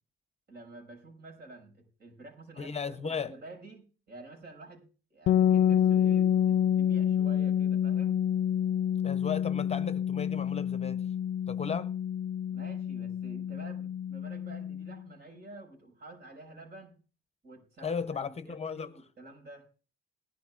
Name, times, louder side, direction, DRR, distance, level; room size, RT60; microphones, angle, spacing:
voice 1, 0.5-8.2 12.5-17.0 17.4-19.7, right 2 dB, 55° right, 6.6 m, -49 dB
voice 2, 2.6-3.3 9.0-11.0 11.5-11.9 17.8-18.9, left 6 dB, 30° left, 0.8 m, -35 dB
sound 1, 5.3-15.0, left 9 dB, 75° left, 0.5 m, -28 dB
20.5 x 11.5 x 2.5 m
cardioid pair, 90°, 20 cm